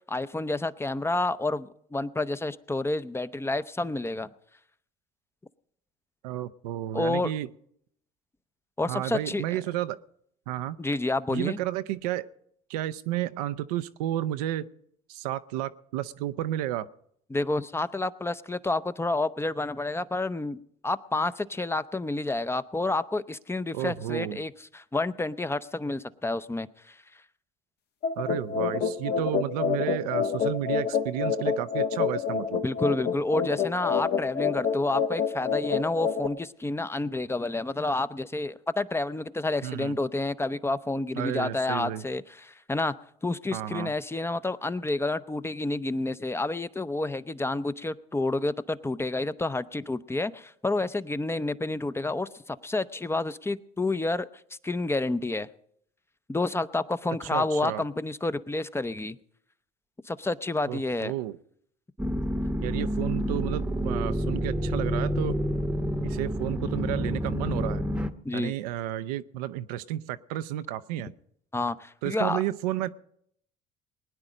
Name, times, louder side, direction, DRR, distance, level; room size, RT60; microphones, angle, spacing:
voice 1, 0.1-4.3 6.9-7.3 8.8-9.6 10.8-11.6 17.3-20.6 20.8-27.0 32.6-42.9 43.2-54.3 54.6-55.5 56.3-59.2 60.1-61.1 68.2-68.5 71.5-72.4, left 2 dB, 10° left, 15 dB, 0.6 m, -29 dB
voice 2, 6.2-7.5 8.9-10.0 10.5-10.8 11.3-12.3 12.7-14.7 15.1-16.9 23.7-24.4 28.2-32.6 39.6-40.0 41.2-42.0 43.5-43.9 57.3-57.8 60.7-61.4 62.6-65.4 66.0-67.8 68.3-71.1 72.0-72.9, right 13 dB, 85° right, 13 dB, 0.6 m, -32 dB
sound 1, 28.0-36.3, left 6 dB, 55° left, 1.2 m, -28 dB
sound 2, 62.0-68.1, equal, 5° right, 0.9 m, -28 dB
20.0 x 9.8 x 5.1 m, 0.69 s
hypercardioid pair, 75°, 20 cm